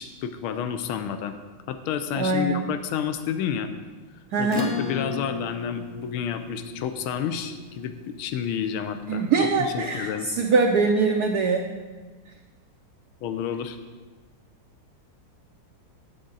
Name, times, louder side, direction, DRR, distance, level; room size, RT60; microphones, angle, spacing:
voice 1, 0.0-1.3 1.7-3.7 4.4-9.2 9.6-10.3 13.2-13.8, left 8 dB, 80° left, 9 dB, 1.5 m, -30 dB
voice 2, 2.1-2.7 4.3-4.7 9.1-11.7, right 4 dB, 70° right, 3 dB, 1.0 m, -23 dB
Acoustic guitar / Strum, 4.5-9.4, left 5 dB, 40° left, 0.7 m, -34 dB
10.0 x 8.6 x 3.9 m, 1.4 s
omnidirectional pair, 2.3 m